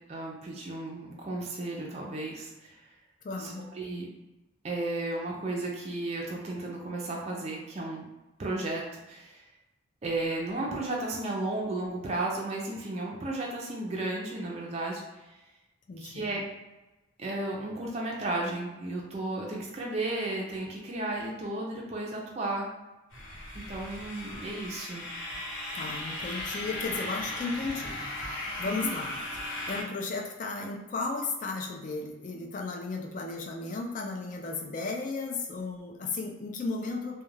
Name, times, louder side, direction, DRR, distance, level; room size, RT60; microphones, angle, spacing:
voice 1, 0.1-2.8 3.4-4.1 4.6-8.1 8.4-9.4 10.0-15.0 16.0-16.4 17.2-22.7 23.5-25.0 28.7-28.9, right 2 dB, 30° right, -2 dB, 0.4 m, -34 dB
voice 2, 3.2-3.7 15.9-16.4 25.7-37.2, left 3 dB, 40° left, 1 dB, 0.3 m, -35 dB
sound 1, 23.1-29.8, left 1 dB, 70° left, 1.0 m, -37 dB
2.3 x 2.1 x 3.1 m, 1.1 s
head